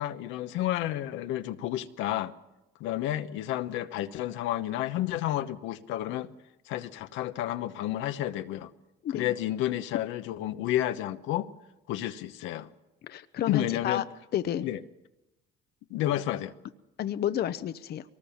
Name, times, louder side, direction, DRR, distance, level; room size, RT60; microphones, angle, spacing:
voice 1, 0.0-2.3 2.8-6.3 6.7-8.7 9.1-11.5 11.9-12.7 13.5-14.0 14.6-14.8 15.9-16.5, left 13 dB, 80° left, 1.0 m, -31 dB
voice 2, 13.1-14.0 14.3-14.7 17.0-18.0, left 11 dB, 55° left, 0.8 m, -30 dB
22.5 x 19.5 x 7.2 m
supercardioid pair, 85°, 20 cm